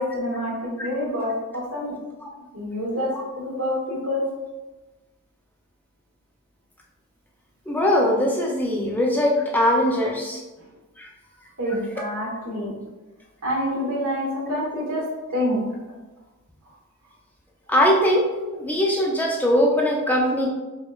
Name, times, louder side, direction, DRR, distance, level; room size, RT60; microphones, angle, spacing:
voice 1, 0.0-1.9 2.5-3.1 3.4-4.2 11.6-12.7 13.4-15.0 15.3-15.6, left 1 dB, 80° right, -5 dB, 1.2 m, -27 dB
voice 2, 7.7-10.4 11.0-11.1 17.7-18.3 18.5-20.5, equal, 10° left, -1 dB, 0.4 m, -21 dB
4.7 x 2.1 x 2.3 m, 1.1 s
head